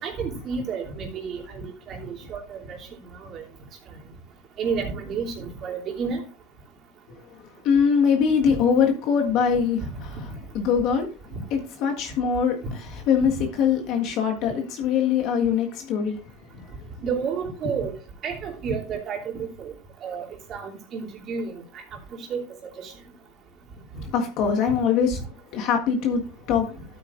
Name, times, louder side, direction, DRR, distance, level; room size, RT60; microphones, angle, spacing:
voice 1, 0.0-2.8 3.2-3.4 4.6-6.2 8.4-8.6 17.0-17.9 18.2-19.7 20.0-21.5 22.3-22.4 22.8-22.9, right 5 dB, 40° right, 3.0 m, -31 dB
voice 2, 7.6-10.1 10.5-11.1 11.5-16.2 24.1-25.2 25.5-26.2 26.5-26.7, left 7 dB, 55° left, 1.6 m, -22 dB
13.0 x 8.8 x 2.6 m
supercardioid pair, 130°, 0 cm